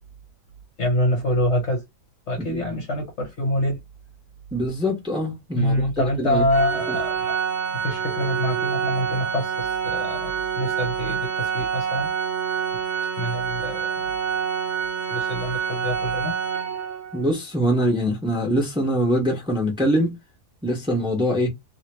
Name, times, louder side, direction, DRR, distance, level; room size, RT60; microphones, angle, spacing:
voice 1, 0.8-1.8 2.3-3.8 5.6-7.4 7.7-12.1 13.2-14.1 15.1-16.3, left 1 dB, 50° left, 1.1 m, -25 dB
voice 2, 4.5-5.9 6.2-6.4 6.9-7.0 17.1-20.2 20.6-21.5, equal, 5° right, 1.0 m, -23 dB
Organ, 6.5-17.2, right 7 dB, 65° right, 1.3 m, -27 dB
2.9 x 2.8 x 2.9 m
omnidirectional pair, 1.8 m